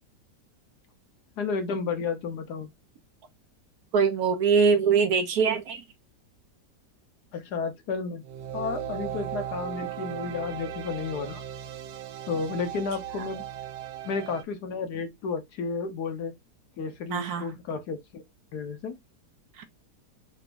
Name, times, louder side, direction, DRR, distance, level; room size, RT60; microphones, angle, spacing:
voice 1, 1.4-2.7 7.3-8.3 8.5-11.4 12.3-13.4 14.0-16.4 16.8-18.2 18.5-18.9, left 5 dB, 70° left, 1.4 m, -32 dB
voice 2, 3.9-5.8 17.1-17.5 19.6-19.7, right 5 dB, 65° right, 1.1 m, -23 dB
sound 1, 8.2-14.4, right 9 dB, 90° right, 1.3 m, -37 dB
4.0 x 2.5 x 3.4 m
omnidirectional pair, 1.8 m